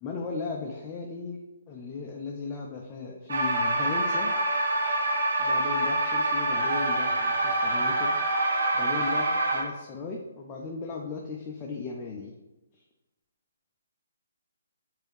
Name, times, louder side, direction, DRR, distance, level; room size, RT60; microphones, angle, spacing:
voice 1, 0.0-1.4 1.7-4.3 5.4-8.2 8.7-12.3 12.7-12.8, left 4 dB, 20° left, -1 dB, 0.4 m, -36 dB
Synth tones, 3.3-9.6, right 1 dB, 70° right, 0.7 m, -26 dB
3.2 x 2.6 x 3.1 m, 1.0 s
hypercardioid pair, 150°, 0 cm